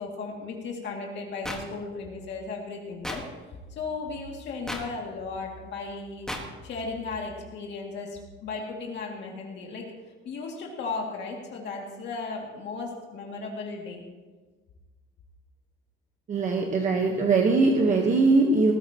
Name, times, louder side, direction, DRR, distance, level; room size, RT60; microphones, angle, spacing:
voice 1, 0.0-3.2 3.7-6.3 6.6-9.8 10.2-14.0, left 4 dB, 55° left, -1 dB, 2.3 m, -35 dB
sound 1, 1.4-1.6 3.0-3.2 4.7-4.8 6.3-6.4, left 1 dB, 5° left, 1.4 m, -32 dB
voice 2, 16.3-18.7, right 3 dB, 35° right, 2 dB, 1.1 m, -21 dB
19.5 x 14.0 x 2.9 m, 1.3 s
cardioid pair, 180°, 21 cm